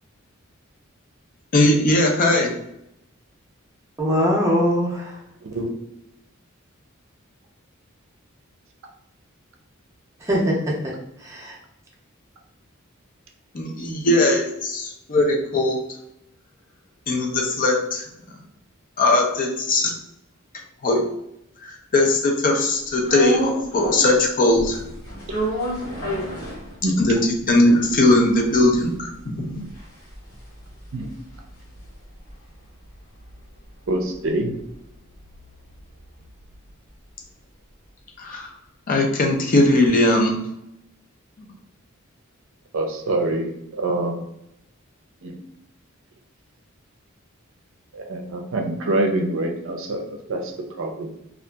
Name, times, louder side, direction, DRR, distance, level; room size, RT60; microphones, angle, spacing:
voice 1, 1.5-2.5 13.5-15.8 17.1-18.0 19.0-19.9 20.8-21.0 21.6-24.8 27.0-29.6 38.2-38.5 38.9-40.4, left 2 dB, 40° left, 1 dB, 0.5 m, -19 dB
voice 2, 4.0-5.2 10.2-10.9 11.2-11.6, equal, 15° right, -3 dB, 0.6 m, -22 dB
sound 1, 23.0-24.2 24.6-27.1 27.5-27.6 27.8-32.3 32.6-36.7, right 1 dB, 85° left, 1.2 m, -31 dB
voice 3, 33.9-34.5 42.7-43.5 43.7-44.2 45.2-45.3 47.9-50.5 50.8-51.1, right 2 dB, 65° right, 3 dB, 0.5 m, -25 dB
2.7 x 2.4 x 2.2 m, 0.80 s
head